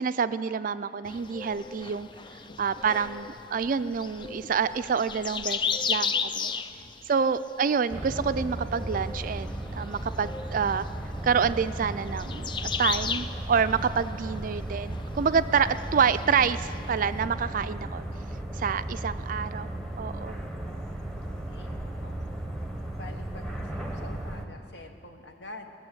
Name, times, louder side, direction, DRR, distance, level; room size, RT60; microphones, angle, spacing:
voice 1, 0.0-2.1 2.6-5.6 5.9-6.6 7.1-10.9 11.2-18.0 18.5-20.4, right 6 dB, 45° right, 13 dB, 0.4 m, -27 dB
sound 1, 1.0-17.3, left 6 dB, 25° left, 0.4 m, -36 dB
voice 2, 6.5-7.0 21.5-22.2 22.9-25.7, left 2 dB, 65° left, 5 dB, 1.2 m, -47 dB
sound 2, 7.9-24.5, right 1 dB, 5° left, 1.0 m, -35 dB
19.0 x 7.0 x 8.9 m, 2.6 s
head